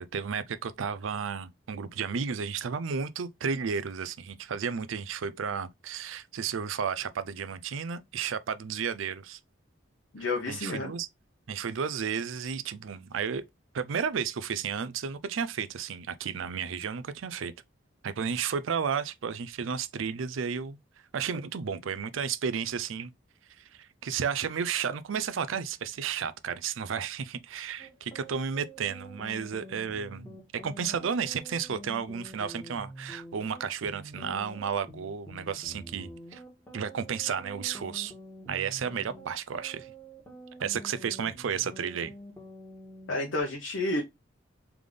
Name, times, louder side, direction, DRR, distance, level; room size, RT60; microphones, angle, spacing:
voice 1, 0.0-9.4 10.5-11.1 11.5-13.4 13.7-17.5 18.0-20.8 21.1-23.1 23.7-30.4 30.6-36.4 36.7-38.1 38.5-39.9 40.6-42.1, right 6 dB, 80° right, 0.5 m, -32 dB
voice 2, 10.1-10.9 43.1-44.0, left 2 dB, 70° left, 0.8 m, -30 dB
sound 1, 27.8-43.4, right 1 dB, 10° left, 1.3 m, -47 dB
3.5 x 3.3 x 3.7 m
head